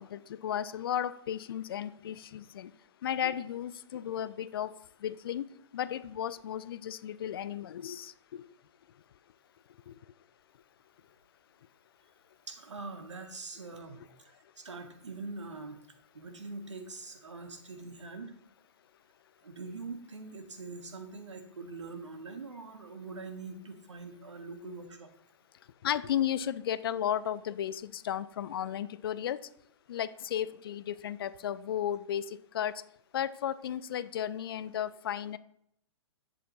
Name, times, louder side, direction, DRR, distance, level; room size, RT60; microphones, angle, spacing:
voice 1, 0.0-2.7 3.0-4.7 5.0-5.4 5.7-8.1 25.8-29.4 29.9-32.2 32.5-32.7 33.1-35.4, left 10 dB, 50° left, 16 dB, 0.5 m, -34 dB
voice 2, 12.5-14.1 14.6-15.8 16.1-18.3 19.4-25.1, right 3 dB, 75° right, 6 dB, 1.4 m, -43 dB
11.0 x 8.3 x 2.9 m, 0.72 s
figure-of-eight pair, 120°, 15 cm